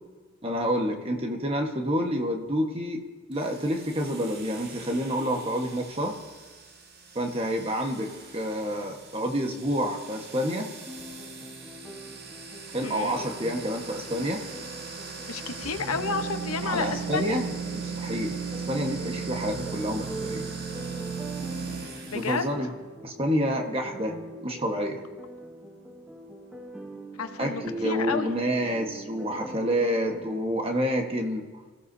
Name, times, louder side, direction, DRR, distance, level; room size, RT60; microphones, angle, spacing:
voice 1, 0.4-3.0 3.3-6.2 7.1-10.7 12.7-14.4 16.6-18.4 18.7-20.5 22.1-22.7 23.0-24.1 24.4-25.0 27.4-31.5, equal, 25° right, 3 dB, 1.4 m, -28 dB
sound 1, 3.3-22.4, right 5 dB, 45° right, 1.6 m, -38 dB
sound 2, 10.9-30.2, right 1 dB, 5° right, 1.0 m, -42 dB
voice 2, 12.8-13.2 15.3-17.4 22.1-22.4 27.2-28.3, left 4 dB, 90° left, 7 dB, 1.1 m, -31 dB
25.5 x 15.5 x 2.8 m, 1.4 s
head